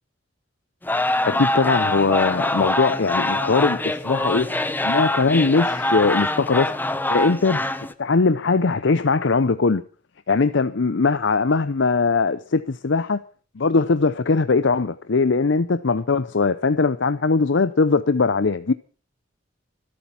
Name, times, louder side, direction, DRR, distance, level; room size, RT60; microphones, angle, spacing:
sound 1, 0.8-7.9, left 1 dB, 10° left, 1.0 m, -24 dB
voice 1, 1.2-4.5 4.8-6.7 7.1-7.6 8.0-9.8 10.3-13.2 13.6-18.7, left 4 dB, 65° left, 0.7 m, -20 dB
25.0 x 8.7 x 5.7 m
head